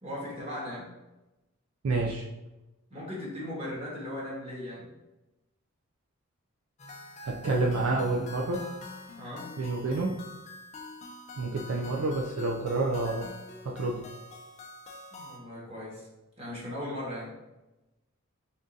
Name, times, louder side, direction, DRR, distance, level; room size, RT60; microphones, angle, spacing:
voice 1, 0.0-0.9 2.9-4.9 9.1-9.5 15.1-16.1 16.4-17.3, left 1 dB, 25° right, -6 dB, 1.4 m, -38 dB
voice 2, 1.8-2.2 7.2-8.6 9.6-10.2 11.4-13.3 13.6-14.0, right 2 dB, 65° right, -1 dB, 0.4 m, -29 dB
sound 1, 6.8-15.4, left 2 dB, 30° left, 0.4 m, -45 dB
3.7 x 3.6 x 2.6 m, 1.0 s
head